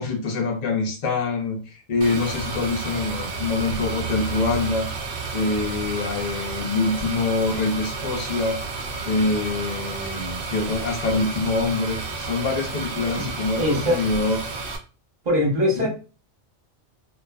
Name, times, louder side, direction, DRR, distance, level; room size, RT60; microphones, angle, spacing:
voice 1, 0.0-4.9 5.3-8.6 9.0-14.6 15.8-15.9, left 3 dB, 45° left, 2 dB, 0.6 m, -25 dB
sound 1, 2.0-14.8, right 4 dB, 60° right, 0.6 m, -31 dB
voice 2, 13.6-14.0 15.2-15.9, left 1 dB, 40° right, -2 dB, 1.0 m, -21 dB
2.4 x 2.3 x 2.3 m, 0.34 s
omnidirectional pair, 1.2 m